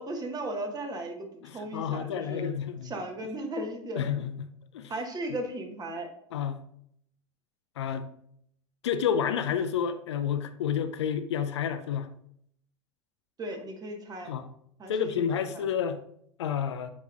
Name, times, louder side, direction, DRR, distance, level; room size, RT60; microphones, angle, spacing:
voice 1, 0.0-2.5 2.8-4.1 4.9-6.1 13.4-14.3 14.8-15.2 15.5-15.6, right 1 dB, 25° right, 4 dB, 1.3 m, -36 dB
voice 2, 1.4-2.9 4.0-4.9 6.3-6.6 7.8-8.1 8.8-12.1 14.3-14.5 14.9-16.0 16.4-16.9, left 8 dB, 75° left, 10 dB, 0.5 m, -30 dB
8.3 x 4.6 x 2.4 m, 0.70 s
figure-of-eight pair, 75°, 15 cm